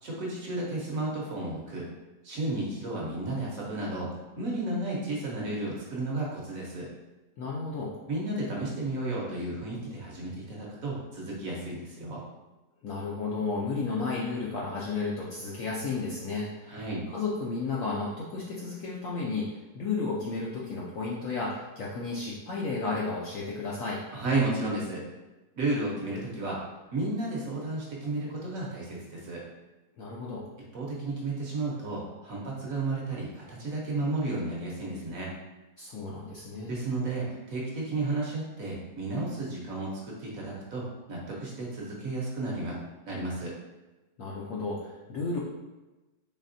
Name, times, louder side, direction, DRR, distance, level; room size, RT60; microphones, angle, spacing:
voice 1, 0.0-1.9 2.2-6.9 8.1-12.2 16.7-17.1 24.1-25.0 25.6-26.6 26.9-29.4 30.7-35.3 36.6-42.8 43.1-43.5, right 2 dB, 60° right, -3 dB, 1.0 m, -33 dB
voice 2, 7.4-8.0 12.8-16.8 17.1-19.5 19.7-24.0 30.0-30.4 35.8-36.8 44.2-45.4, left 3 dB, 70° left, -5 dB, 0.8 m, -33 dB
4.1 x 3.4 x 2.6 m, 1.1 s
omnidirectional pair, 1.9 m